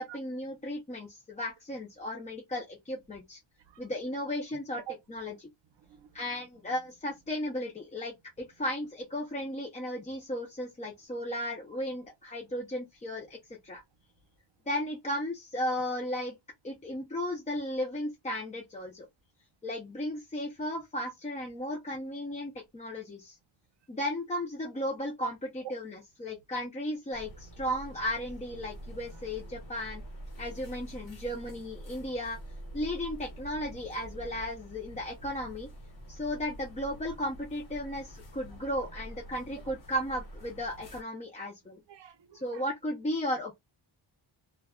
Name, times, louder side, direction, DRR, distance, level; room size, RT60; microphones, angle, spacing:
voice 1, 0.0-3.4 3.8-4.8 5.1-5.3 6.1-13.8 14.7-16.3 16.6-19.1 19.6-23.4 23.9-30.0 30.4-32.4 32.7-35.7 36.1-41.8 42.3-43.5, left 1 dB, 20° left, 0.3 m, -35 dB
voice 2, 5.8-6.2 29.1-29.2 38.5-38.6 39.7-39.8 41.9-42.6, right 13 dB, 65° right, 0.6 m, -47 dB
sound 1, 27.1-41.0, right 1 dB, 50° left, 1.0 m, -46 dB
2.2 x 2.0 x 3.4 m
wide cardioid pair, 175°, 47 cm